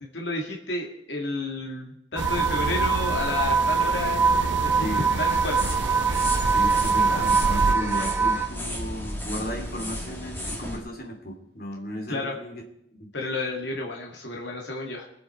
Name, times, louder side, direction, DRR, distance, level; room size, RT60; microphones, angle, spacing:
voice 1, 0.0-4.2 4.6-5.6 12.1-12.4 13.1-15.1, left 2 dB, 75° left, -1 dB, 2.1 m, -31 dB
sound 1, 2.2-8.5, right 5 dB, 15° right, 1.1 m, -24 dB
sound 2, 2.2-7.7, right 3 dB, 80° right, 0.6 m, -30 dB
sound 3, 5.3-10.8, left 1 dB, 10° left, 2.0 m, -34 dB
voice 2, 6.4-12.6 12.9-13.1, equal, 50° left, 2 dB, 2.8 m, -34 dB
22.5 x 8.2 x 4.4 m, 0.77 s
head